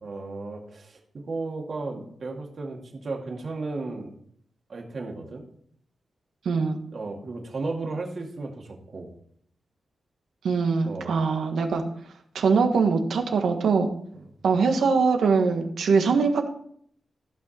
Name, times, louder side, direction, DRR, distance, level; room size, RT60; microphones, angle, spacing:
voice 1, 0.0-4.1 4.7-5.4 6.9-9.1 10.9-11.2 14.1-14.3, right 3 dB, 50° right, 1 dB, 2.2 m, -34 dB
voice 2, 6.4-6.8 10.4-11.8 12.3-13.9 14.4-16.5, right 5 dB, 90° right, 4 dB, 1.5 m, -22 dB
14.5 x 6.0 x 4.3 m, 0.65 s
wide cardioid pair, 110°, 0 cm